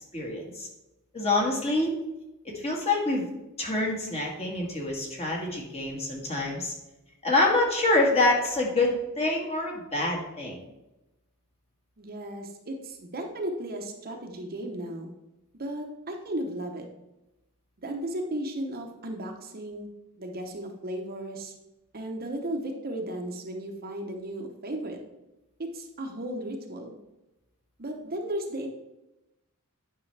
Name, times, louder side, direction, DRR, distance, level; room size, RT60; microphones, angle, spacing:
voice 1, 0.1-0.7 1.1-1.9 2.5-3.3 3.6-6.7 7.2-10.6, left 2 dB, 30° left, -1 dB, 1.7 m, -26 dB
voice 2, 12.0-15.1 15.6-16.9 17.8-19.9 20.2-21.5 21.9-25.0 25.6-26.9 27.8-28.7, right 1 dB, 45° right, 3 dB, 0.9 m, -35 dB
9.7 x 5.5 x 3.3 m, 0.96 s
head